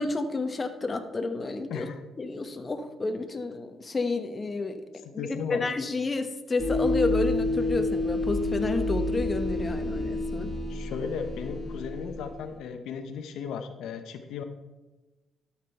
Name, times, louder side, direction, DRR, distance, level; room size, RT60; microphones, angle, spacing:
voice 1, 0.0-1.9 2.2-4.8 5.2-10.5, left 3 dB, 30° left, 7 dB, 1.0 m, -30 dB
voice 2, 1.7-2.0 5.0-5.7 10.7-14.4, left 6 dB, 80° left, 7 dB, 0.7 m, -36 dB
sound 1, 6.6-12.4, left 2 dB, 25° right, 2.6 m, -29 dB
12.5 x 6.0 x 4.4 m, 1.1 s
cardioid pair, 90°, 0 cm